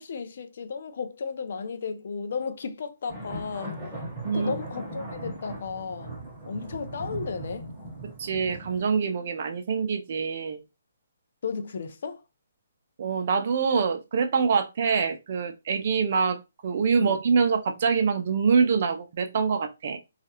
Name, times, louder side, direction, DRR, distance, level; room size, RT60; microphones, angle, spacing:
voice 1, 0.0-3.7 4.3-6.1 6.5-7.7 11.4-12.2 17.0-17.2, left 5 dB, 55° left, 0.4 m, -34 dB
sound 1, 3.1-8.8, right 1 dB, 10° right, 1.0 m, -38 dB
voice 2, 8.2-10.6 13.0-20.0, right 5 dB, 45° right, 0.4 m, -25 dB
2.4 x 2.0 x 2.8 m
hypercardioid pair, 165°, 0 cm